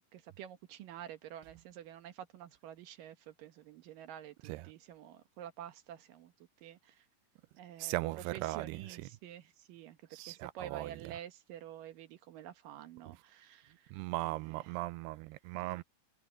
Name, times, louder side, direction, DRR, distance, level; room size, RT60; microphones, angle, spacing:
voice 1, 0.0-6.3 6.6-7.1 7.6-13.9 14.2-14.8 15.6-15.8, right 11 dB, 65° right, 2.5 m, -49 dB
voice 2, 7.8-8.8 10.1-10.9 13.9-15.8, right 19 dB, 85° right, 2.6 m, -38 dB
omnidirectional pair, 4.7 m